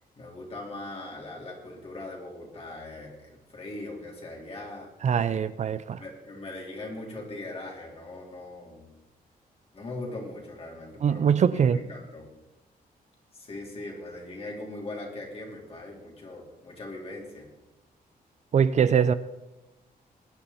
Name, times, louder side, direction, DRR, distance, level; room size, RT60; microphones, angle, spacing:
voice 1, 0.2-4.9 6.0-8.9 9.7-11.4 11.7-12.3 13.3-17.5, left 2 dB, 40° left, -2 dB, 4.1 m, -40 dB
voice 2, 5.0-6.0 11.0-11.8 18.5-19.1, right 7 dB, 50° right, 14 dB, 0.5 m, -22 dB
21.0 x 10.0 x 4.2 m, 0.98 s
wide cardioid pair, 130°, 15 cm